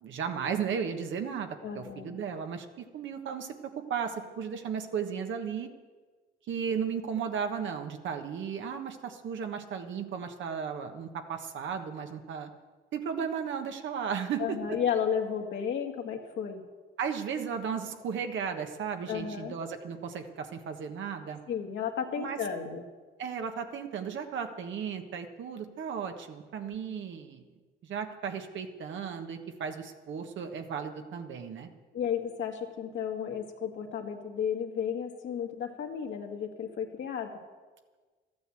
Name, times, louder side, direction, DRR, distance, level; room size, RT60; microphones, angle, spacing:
voice 1, 0.0-5.7 6.5-12.5 12.9-14.6 17.0-21.4 22.2-22.4 23.2-27.4 27.8-31.7, right 7 dB, 70° right, 5 dB, 1.4 m, -35 dB
voice 2, 1.6-2.2 14.4-16.6 19.1-19.6 21.5-22.8 26.6-26.8 31.9-37.4, left 7 dB, 70° left, 2 dB, 1.9 m, -33 dB
13.0 x 9.4 x 7.7 m, 1.4 s
cardioid pair, 90°, 20 cm